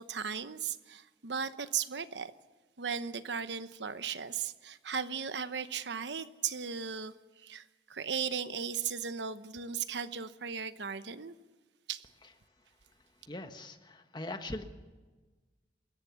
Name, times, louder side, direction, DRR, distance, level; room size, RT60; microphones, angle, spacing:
voice 1, 0.0-2.3 2.8-7.6 7.9-11.4 11.9-12.1, right 7 dB, 85° right, 12 dB, 1.0 m, -36 dB
voice 2, 13.3-14.7, left 1 dB, 25° left, 7 dB, 1.4 m, -41 dB
27.0 x 14.5 x 7.1 m, 1.3 s
head